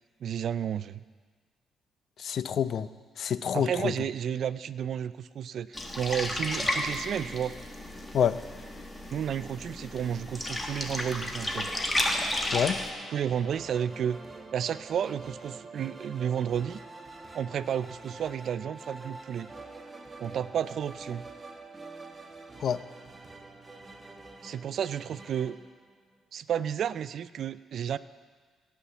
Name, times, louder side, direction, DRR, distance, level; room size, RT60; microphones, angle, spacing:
voice 1, 0.2-1.0 3.5-7.5 9.1-11.7 13.1-14.2 14.5-16.8 17.3-19.5 20.2-21.3 24.4-25.6 26.3-28.0, right 9 dB, 65° right, 16 dB, 0.4 m, -32 dB
voice 2, 2.2-2.9 3.2-3.9 8.1-8.4 12.5-12.8 22.6-22.8, left 8 dB, 60° left, 14 dB, 0.5 m, -27 dB
sound 1, 5.7-12.9, left 1 dB, 15° left, 1.6 m, -33 dB
sound 2, 11.3-26.3, right 3 dB, 25° right, 1.2 m, -46 dB
17.5 x 5.8 x 7.0 m, 1.5 s
cardioid pair, 90°, 0 cm